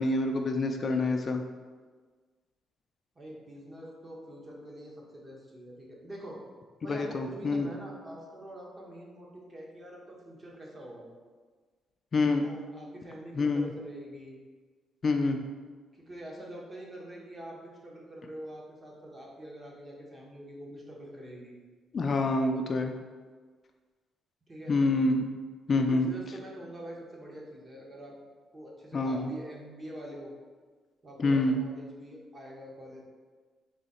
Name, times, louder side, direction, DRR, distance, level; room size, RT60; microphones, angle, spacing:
voice 1, 0.0-1.4 6.9-7.7 12.1-12.5 13.4-13.7 15.0-15.4 21.9-22.9 24.7-25.2 25.7-26.1 28.9-29.3 31.2-31.6, left 2 dB, 45° left, 5 dB, 0.3 m, -26 dB
voice 2, 3.2-6.4 6.8-11.1 12.3-14.4 15.9-21.5 24.5-24.8 25.7-28.1 28.5-30.3 31.0-33.1, right 1 dB, 35° right, -2 dB, 1.1 m, -45 dB
3.9 x 2.8 x 4.2 m, 1.5 s
cardioid pair, 90°, 0 cm